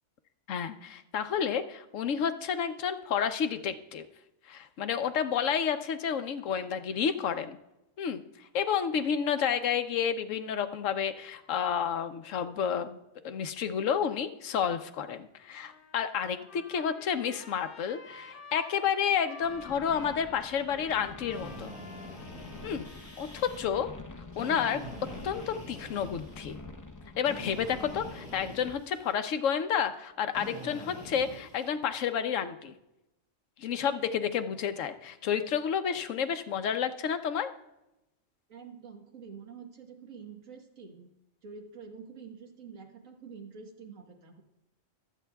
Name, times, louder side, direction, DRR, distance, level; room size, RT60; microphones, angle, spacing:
voice 1, 0.5-4.1 4.5-7.6 8.0-8.2 8.5-13.0 13.2-21.7 22.6-22.9 23.2-23.9 24.4-24.8 25.2-26.5 27.2-32.7 33.6-37.5, left 7 dB, 75° left, 9 dB, 1.0 m, -30 dB
Trumpet, 15.5-23.4, left 4 dB, 45° left, 1.1 m, -51 dB
sound 1, 19.4-28.8, left 3 dB, 20° left, 0.5 m, -47 dB
Drill, 21.3-23.6 24.3-26.5 27.2-29.1 30.3-31.7, equal, 5° right, 5.0 m, -45 dB
voice 2, 38.5-41.1 41.4-44.4, right 5 dB, 90° right, 3 dB, 1.8 m, -47 dB
24.5 x 8.4 x 2.3 m, 0.92 s
omnidirectional pair, 1.3 m